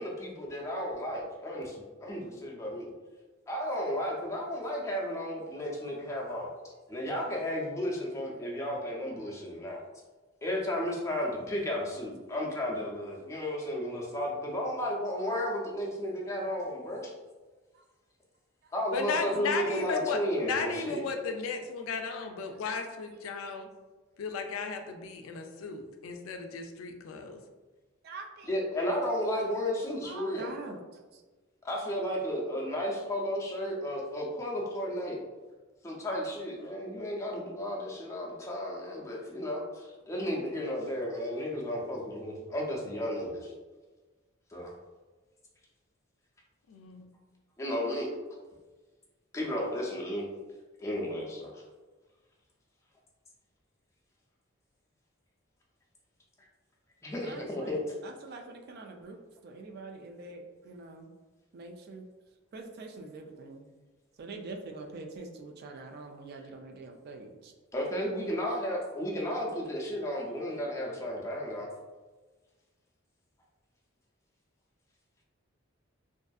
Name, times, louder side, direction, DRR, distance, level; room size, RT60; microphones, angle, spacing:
voice 1, 0.0-1.7 2.0-2.9 3.5-6.5 6.9-9.8 10.4-17.1 18.7-21.0 28.5-30.5 31.6-35.2 35.8-39.6 40.1-43.4 44.5-44.7 47.6-48.1 49.3-50.3 50.8-51.5 57.0-57.8 67.7-71.7, equal, 15° left, -3 dB, 0.5 m, -33 dB
voice 2, 11.3-11.7 17.7-17.8 28.0-28.6 29.3-30.8 31.1-31.2 57.2-61.1 61.5-62.1 62.5-63.7 64.2-67.5, right 3 dB, 50° right, 4 dB, 0.3 m, -45 dB
voice 3, 18.9-23.7 24.2-27.4 46.7-47.0, left 4 dB, 90° left, 5 dB, 0.3 m, -35 dB
2.5 x 2.4 x 2.3 m, 1.3 s
head